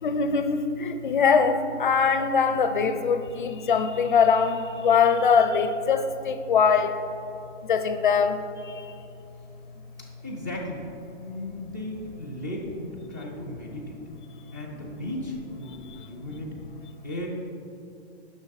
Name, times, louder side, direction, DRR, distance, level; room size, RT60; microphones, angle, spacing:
voice 1, 0.0-7.0 7.6-8.9 15.9-16.0, left 6 dB, 45° left, 9 dB, 0.5 m, -22 dB
voice 2, 10.0-10.9 11.2-14.0 14.5-16.5 17.0-17.3, left 1 dB, 15° right, -4 dB, 0.4 m, -36 dB
10.5 x 5.9 x 4.0 m, 2.6 s
hypercardioid pair, 180°, 34 cm